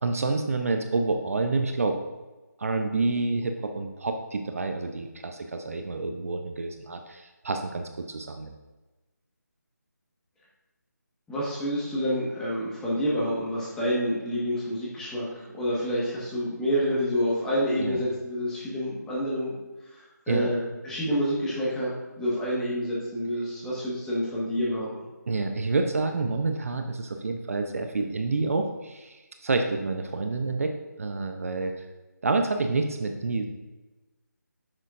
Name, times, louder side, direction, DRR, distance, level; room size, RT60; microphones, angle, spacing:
voice 1, 0.0-2.0 2.6-8.5 17.8-18.0 20.3-20.5 25.3-31.9 32.2-33.4, right 3 dB, 50° right, 5 dB, 0.7 m, -28 dB
voice 2, 11.3-15.2 15.5-19.5 19.9-20.6 20.8-24.9, equal, 5° left, -7 dB, 1.4 m, -28 dB
9.8 x 6.5 x 2.5 m, 1.2 s
figure-of-eight pair, 165°, 10 cm